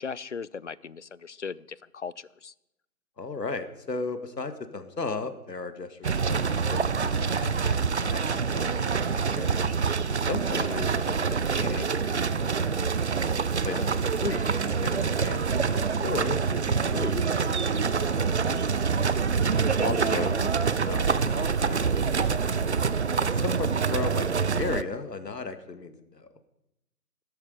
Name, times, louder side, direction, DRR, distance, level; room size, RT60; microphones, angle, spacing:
voice 1, 0.0-2.5 10.6-10.9 13.6-14.0 19.8-20.3, left 5 dB, 50° left, 0.5 m, -38 dB
voice 2, 3.2-9.5 10.3-12.5 13.6-13.8 14.2-16.4 16.7-18.8 19.8-20.5 20.8-22.5 23.2-26.3, left 4 dB, 85° left, 2.0 m, -36 dB
sound 1, 6.0-24.8, right 5 dB, 45° right, 0.5 m, -26 dB
17.5 x 12.5 x 5.1 m
figure-of-eight pair, 155°, 48 cm